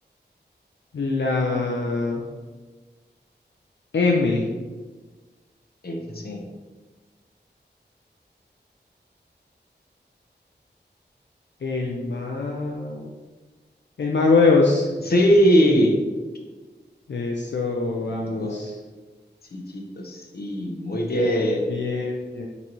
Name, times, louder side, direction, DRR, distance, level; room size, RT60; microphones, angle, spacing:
voice 1, 0.9-2.2 3.9-4.5 11.6-13.1 14.0-14.9 17.1-18.8 21.7-22.5, left 3 dB, 80° left, 0 dB, 0.5 m, -23 dB
voice 2, 5.8-6.4 15.1-16.0 18.4-18.6 19.5-21.7, equal, 55° left, 1 dB, 0.8 m, -21 dB
4.6 x 3.9 x 2.9 m, 1.3 s
wide cardioid pair, 70°, 19 cm